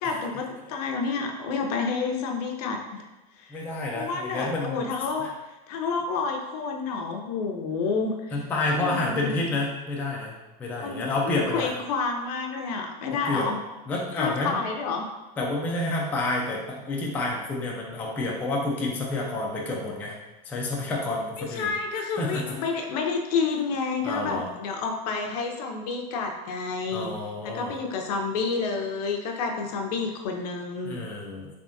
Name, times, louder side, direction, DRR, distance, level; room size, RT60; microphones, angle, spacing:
voice 1, 0.0-3.0 3.4-3.7 3.9-5.3 5.7-8.4 8.7-9.3 10.8-13.6 14.2-15.1 21.4-27.1 27.4-31.0, left 4 dB, 65° left, 3 dB, 0.6 m, -29 dB
voice 2, 3.5-4.9 5.2-5.3 8.3-11.7 13.2-13.5 13.9-14.6 15.4-20.2 20.4-21.7 22.2-22.6 24.0-24.5 26.9-27.7 30.8-31.5, left 2 dB, 10° left, -3 dB, 0.3 m, -29 dB
3.5 x 3.4 x 2.6 m, 1.1 s
supercardioid pair, 165°, 21 cm